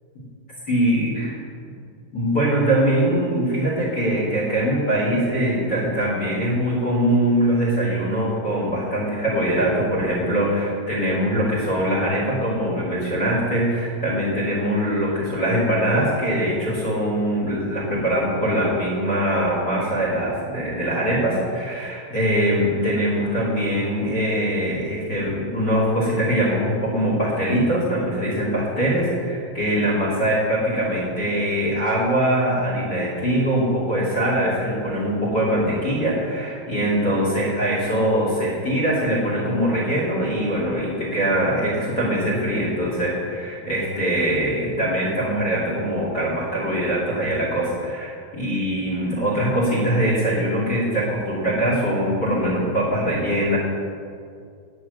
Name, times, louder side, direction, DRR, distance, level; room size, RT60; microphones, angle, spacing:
voice 1, 0.7-1.4 2.1-53.6, right 1 dB, 30° left, -4 dB, 2.6 m, -22 dB
9.4 x 7.8 x 7.9 m, 2.3 s
omnidirectional pair, 4.6 m